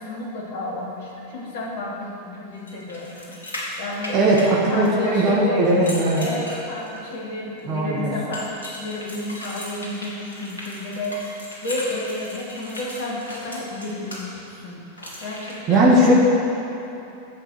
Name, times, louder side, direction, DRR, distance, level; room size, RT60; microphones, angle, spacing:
voice 1, 0.0-3.3 3.8-5.6 6.1-11.1 11.6-14.8 15.2-15.9, left 2 dB, 50° left, -4 dB, 3.1 m, -31 dB
sound 1, 2.7-5.2 5.6-7.1 8.3-14.2 15.0-15.5, left 1 dB, 75° left, 2.4 m, -36 dB
voice 2, 4.1-6.3 7.7-8.1 15.7-16.1, right 1 dB, 30° right, -4 dB, 2.3 m, -18 dB
10.5 x 7.5 x 7.9 m, 3.0 s
figure-of-eight pair, 90°, 0 cm